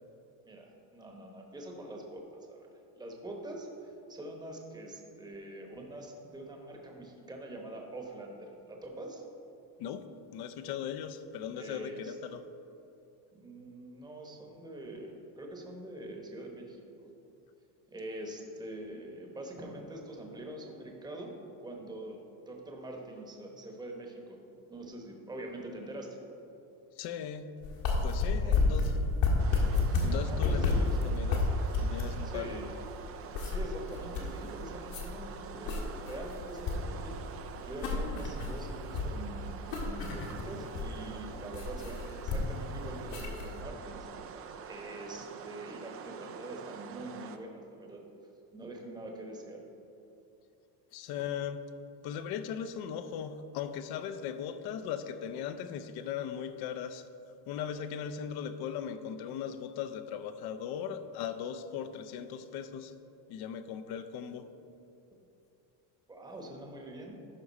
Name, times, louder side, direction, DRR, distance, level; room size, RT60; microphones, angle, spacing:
voice 1, 0.4-2.7 3.0-9.2 11.6-12.1 13.3-17.1 17.9-21.3 21.6-24.4 24.7-26.2 28.4-28.8 29.9-31.0 32.2-32.7 33.4-37.2 37.7-44.1 44.6-48.0 48.5-49.6 66.1-67.2, right 1 dB, 10° right, 1 dB, 0.9 m, -44 dB
voice 2, 10.3-12.4 27.0-27.5 28.0-29.0 30.0-31.5 31.8-32.5 50.9-51.6 52.0-57.1 57.5-62.9 63.3-64.5, left 8 dB, 55° left, 10 dB, 0.6 m, -38 dB
sound 1, 27.6-43.6, left 3 dB, 70° left, 1.7 m, -31 dB
sound 2, 29.4-47.4, right 7 dB, 35° right, 0.4 m, -46 dB
12.0 x 4.8 x 4.1 m, 2.8 s
cardioid pair, 130°, 46 cm